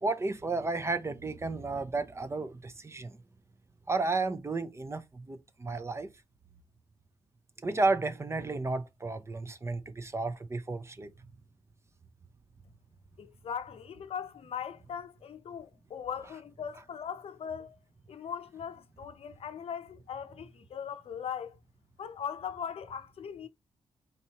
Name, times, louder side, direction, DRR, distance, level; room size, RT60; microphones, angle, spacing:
voice 1, 0.0-3.2 3.9-6.1 7.6-11.1, right 3 dB, 25° right, 0.6 m, -32 dB
voice 2, 13.2-17.8 18.1-21.6 22.0-23.5, left 7 dB, 70° left, 0.6 m, -39 dB
4.3 x 4.1 x 2.9 m
cardioid pair, 100°, 10 cm